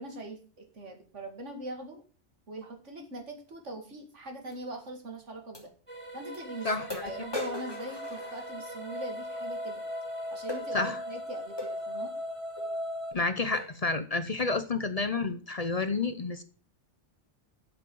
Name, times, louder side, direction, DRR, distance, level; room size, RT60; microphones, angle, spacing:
voice 1, 0.0-2.0 2.5-5.7 6.1-6.8 7.0-9.8 10.3-12.1, right 1 dB, 90° right, 4 dB, 2.5 m, -41 dB
sound 1, 4.5-4.6 5.5-5.7 6.3-6.4 6.9-8.9 10.5-10.7 11.6-11.8 12.6-12.7 13.1-13.2 13.5-13.8 14.4-14.6, left 2 dB, 20° left, 3.1 m, -39 dB
sound 2, 5.9-13.1, equal, 25° right, 1.9 m, -38 dB
voice 2, 6.6-7.1 10.7-11.0 13.1-16.4, left 3 dB, 35° left, 10 dB, 0.8 m, -30 dB
7.7 x 7.5 x 7.8 m, 0.39 s
omnidirectional pair, 1.2 m